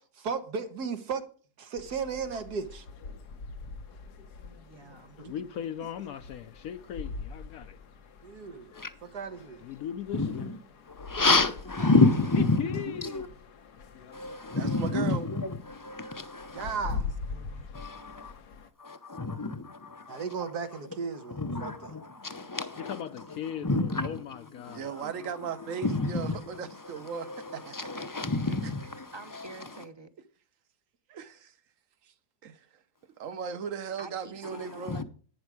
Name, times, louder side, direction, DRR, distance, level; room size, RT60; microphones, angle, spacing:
voice 1, 0.2-1.2 1.6-2.9 5.2-5.3 8.2-8.7 9.1-9.6 16.5-17.0 20.1-22.0, right 5 dB, 85° right, 1.8 m, -35 dB
sound 1, 1.8-18.7, left 4 dB, 90° left, 1.7 m, -43 dB
voice 2, 4.6-5.2 11.8-11.9 16.5-17.7 29.1-30.1 34.0-35.0, right 2 dB, 25° right, 0.7 m, -47 dB
voice 3, 5.2-7.8 8.7-8.8 9.6-10.5 11.2-11.3 12.3-13.2 22.8-24.9, left 9 dB, 70° left, 1.1 m, -38 dB
voice 4, 10.1-10.6 10.9-13.3 14.1-17.0 17.7-18.4 18.8-20.5 21.2-23.0 23.3-24.2 24.6-29.8 34.4-35.0, left 3 dB, 25° left, 0.5 m, -30 dB
voice 5, 14.5-15.2 24.7-28.0 31.1-31.5 32.4-32.6 33.2-35.0, right 6 dB, 60° right, 1.3 m, -37 dB
11.5 x 9.4 x 4.9 m
omnidirectional pair, 1.6 m